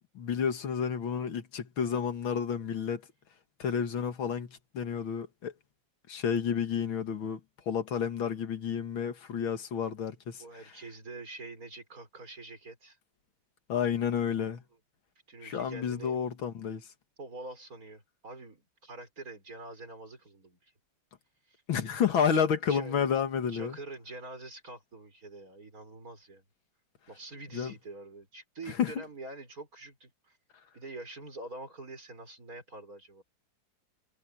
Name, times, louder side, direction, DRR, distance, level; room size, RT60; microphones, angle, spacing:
voice 1, 0.1-3.0 3.6-5.5 6.1-7.4 7.7-10.7 13.7-14.6 15.4-16.9 21.7-23.8 27.5-27.7 28.7-28.9, left 7 dB, 80° left, 2.5 m, -30 dB
voice 2, 10.4-13.0 14.4-14.5 15.3-16.2 17.2-20.7 21.5-21.6 22.1-23.0 23.5-26.4 27.1-30.1 30.7-33.2, right 2 dB, 45° right, 6.2 m, -45 dB
omnidirectional pair, 2.1 m